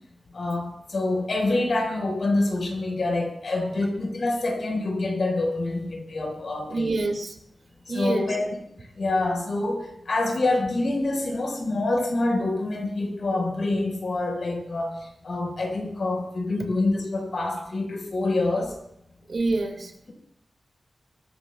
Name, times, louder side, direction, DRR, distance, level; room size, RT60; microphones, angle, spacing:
voice 1, 0.3-6.9 7.9-8.5 9.0-15.0 15.2-18.7, left 2 dB, 60° left, 1 dB, 4.8 m, -26 dB
voice 2, 6.7-7.3 7.9-8.3 19.3-19.9, right 3 dB, 55° right, 4 dB, 2.1 m, -26 dB
26.0 x 14.0 x 2.3 m, 0.77 s
wide cardioid pair, 110°, 0 cm